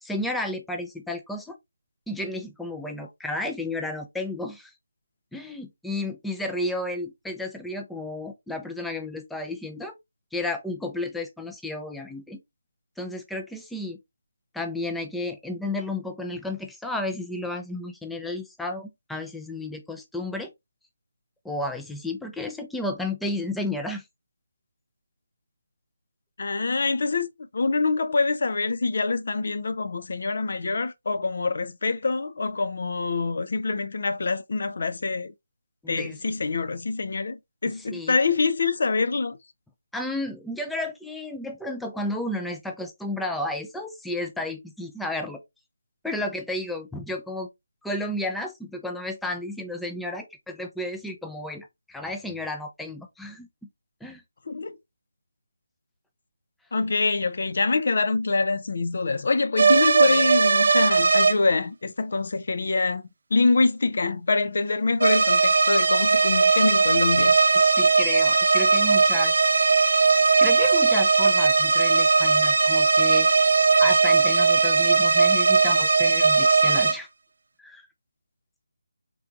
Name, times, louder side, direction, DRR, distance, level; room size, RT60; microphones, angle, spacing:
voice 1, 0.0-1.6 2.1-4.7 5.3-9.9 10.3-12.4 13.0-14.0 14.5-20.5 21.4-24.0 35.8-36.2 37.8-38.2 39.9-45.4 46.0-47.5 47.8-53.5 54.0-54.2 67.5-69.3 70.4-73.3 73.8-77.1 77.6-77.8, left 2 dB, ahead, 0.5 m, -32 dB
voice 2, 26.4-35.3 35.9-39.4 54.5-54.8 56.7-63.0 63.3-67.4, left 3 dB, 55° left, 0.5 m, -25 dB
sound 1, 59.6-61.3 65.0-77.0, right 4 dB, 60° right, 0.5 m, -19 dB
4.4 x 3.8 x 2.4 m
figure-of-eight pair, 155°, 0 cm